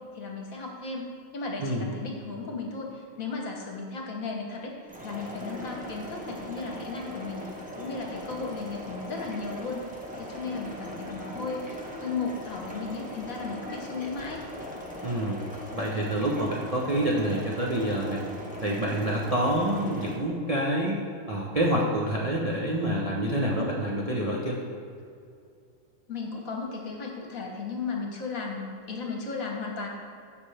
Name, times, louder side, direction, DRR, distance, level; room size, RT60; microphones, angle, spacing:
voice 1, 0.1-1.1 1.3-4.7 5.0-9.8 10.2-14.4 26.1-29.9, left 4 dB, 50° left, 1 dB, 1.3 m, -35 dB
sound 1, 4.9-20.2, left 1 dB, 5° right, 0.9 m, -40 dB
voice 2, 15.0-15.4 15.7-18.2 18.6-21.0 21.3-24.6, right 1 dB, 45° right, -4 dB, 0.4 m, -27 dB
14.5 x 5.1 x 3.4 m, 2.4 s
omnidirectional pair, 2.1 m